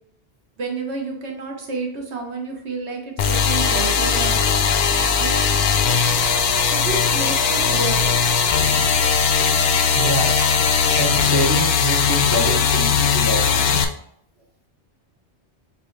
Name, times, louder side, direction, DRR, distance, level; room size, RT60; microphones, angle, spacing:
voice 1, 0.6-4.4 5.2-5.4 6.7-8.3, right 4 dB, 80° right, 1 dB, 1.3 m, -30 dB
sound 1, 3.2-13.8, left 6 dB, 65° left, 0.8 m, -19 dB
voice 2, 9.9-10.3 11.0-13.8, right 1 dB, 25° right, 0 dB, 0.6 m, -25 dB
6.7 x 2.3 x 3.1 m, 0.68 s
omnidirectional pair, 1.1 m